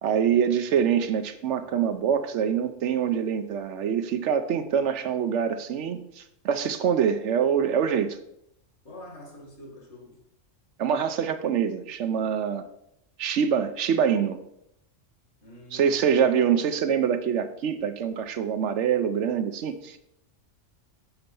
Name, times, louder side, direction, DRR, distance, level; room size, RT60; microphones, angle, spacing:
voice 1, 0.0-8.2 10.8-12.6 13.2-14.4 15.7-20.0, right 8 dB, 70° right, 0.9 m, -25 dB
voice 2, 8.8-10.2 15.4-16.3, left 1 dB, 60° left, 2.0 m, -46 dB
7.0 x 4.3 x 5.3 m
omnidirectional pair, 1.3 m